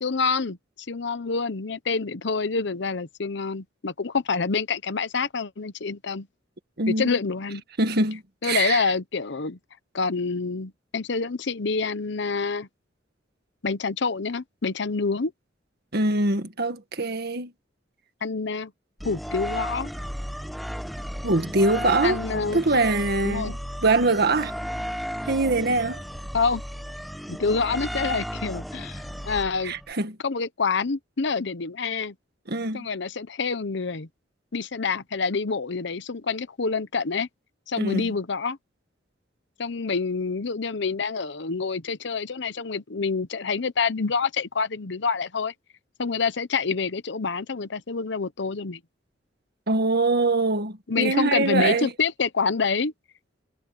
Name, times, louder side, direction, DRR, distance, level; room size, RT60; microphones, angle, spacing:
voice 1, 0.0-0.6 0.9-6.3 6.9-7.6 8.4-9.6 9.9-12.7 13.6-15.3 18.2-18.7 19.0-19.9 22.0-22.6 23.2-23.5 26.3-26.6 27.3-29.7 30.2-32.1 32.7-34.1 34.5-37.3 37.7-38.6 39.6-45.5 46.0-48.8 50.9-52.9, left 4 dB, 70° left, 0.9 m, -27 dB
voice 2, 6.8-7.1 7.8-8.8 15.9-17.5 21.2-22.2 22.5-24.5 25.2-26.0 29.6-30.2 32.5-32.9 37.8-38.0 49.7-51.9, right 2 dB, 60° right, 1.9 m, -23 dB
sound 1, 19.0-29.9, equal, ahead, 1.4 m, -34 dB
head